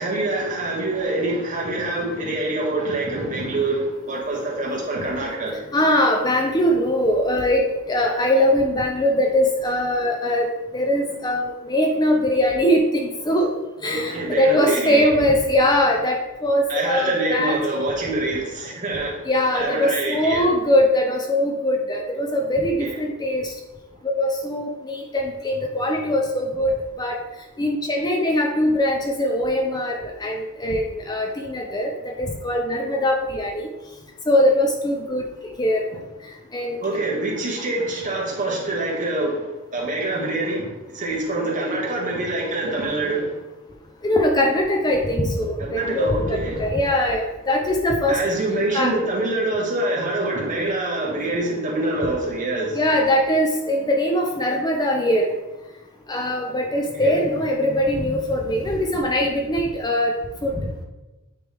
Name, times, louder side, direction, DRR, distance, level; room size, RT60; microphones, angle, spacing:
voice 1, 0.0-5.6 13.8-15.2 16.7-19.2 19.5-20.5 22.8-23.0 36.8-43.3 45.6-46.7 48.1-52.8 56.9-57.1, right 2 dB, 35° right, -3 dB, 1.4 m, -25 dB
voice 2, 5.7-10.5 10.7-13.5 13.8-17.6 19.3-23.5 24.0-27.2 27.6-31.9 32.2-33.7 34.3-35.3 35.6-35.9 36.5-37.0 44.0-48.2 48.7-49.0 52.7-55.3 56.1-60.1 60.4-60.7, left 1 dB, 20° left, 2 dB, 0.4 m, -21 dB
9.1 x 3.2 x 3.4 m, 1.1 s
head